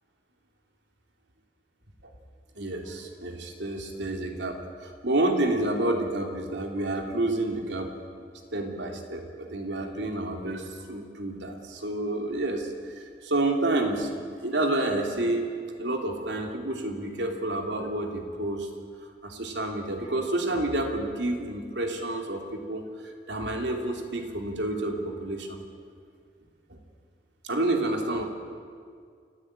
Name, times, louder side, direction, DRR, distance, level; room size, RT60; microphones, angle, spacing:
voice 1, 2.6-7.9 8.5-15.5 15.8-18.7 19.2-25.6 27.4-28.3, right 2 dB, 85° right, 3 dB, 3.1 m, -29 dB
28.5 x 14.5 x 8.9 m, 2.1 s
head